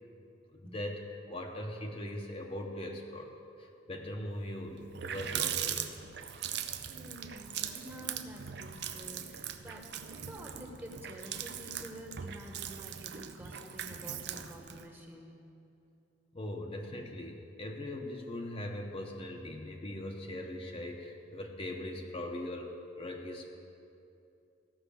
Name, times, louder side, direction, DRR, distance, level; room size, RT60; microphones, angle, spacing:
voice 1, 0.5-3.3 3.6-5.9 16.3-23.5, left 1 dB, 30° left, 1 dB, 0.8 m, -40 dB
Water tap faucet, 4.4-4.5 4.8-14.9, right 9 dB, 60° right, 0.6 m, -40 dB
voice 2, 6.9-15.4, equal, 10° right, 1 dB, 1.2 m, -49 dB
15.0 x 5.8 x 6.8 m, 2.7 s
head